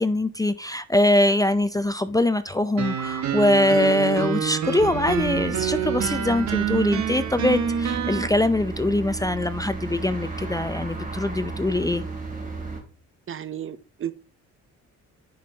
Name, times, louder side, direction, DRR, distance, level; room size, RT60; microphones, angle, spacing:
voice 1, 0.0-12.0, left 1 dB, 10° left, 0.5 m, -23 dB
sound 1, 2.8-8.3, right 8 dB, 65° right, 1.2 m, -27 dB
sound 2, 4.8-12.8, right 4 dB, 25° right, 3.1 m, -34 dB
voice 2, 13.3-14.1, right 10 dB, 45° right, 0.7 m, -33 dB
10.0 x 5.4 x 2.8 m
cardioid pair, 90°, 30 cm